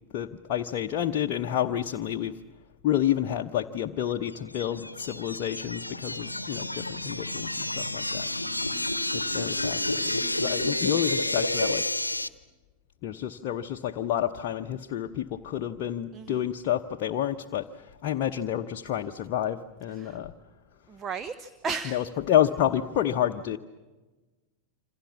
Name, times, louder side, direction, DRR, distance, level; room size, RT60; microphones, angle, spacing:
voice 1, 0.1-2.3 2.8-8.3 9.1-11.9 13.0-20.3 21.9-23.6, left 11 dB, 45° left, 3 dB, 0.9 m, -29 dB
sound 1, 4.3-12.3, left 2 dB, 85° left, 0.9 m, -30 dB
voice 2, 16.1-16.4 20.0-20.2 20.9-22.0, right 5 dB, 25° right, 11 dB, 1.0 m, -35 dB
27.5 x 26.0 x 7.2 m, 1.2 s
figure-of-eight pair, 90°, 0 cm